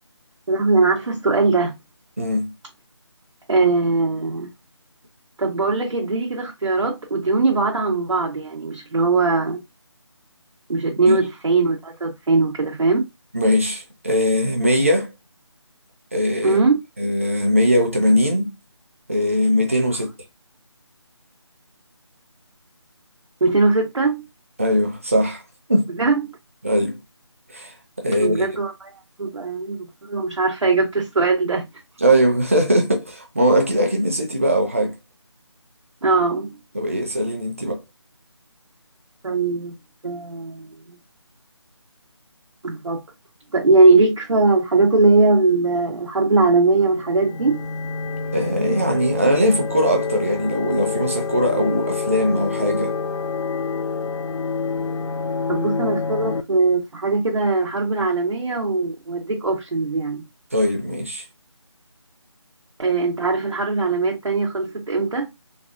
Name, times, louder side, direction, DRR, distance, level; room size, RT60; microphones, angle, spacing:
voice 1, 0.5-1.7 3.5-4.5 5.4-9.6 10.7-13.1 16.4-16.8 23.4-24.2 25.9-26.2 28.2-28.9 29.2-31.7 36.0-36.5 39.2-39.8 40.0-40.8 42.6-43.0 43.5-47.6 55.5-60.2 62.8-65.3, right 3 dB, 90° right, 0.8 m, -20 dB
voice 2, 2.2-2.5 11.1-11.2 13.3-15.1 16.1-16.6 17.0-18.5 19.1-20.1 24.6-25.4 25.7-25.9 26.6-27.0 27.5-28.4 32.0-34.9 36.7-37.8 48.3-52.9 60.5-61.2, equal, 30° right, 0.6 m, -20 dB
sound 1, 46.9-56.4, left 4 dB, 80° left, 0.5 m, -27 dB
3.3 x 2.1 x 2.4 m
figure-of-eight pair, 175°, 15 cm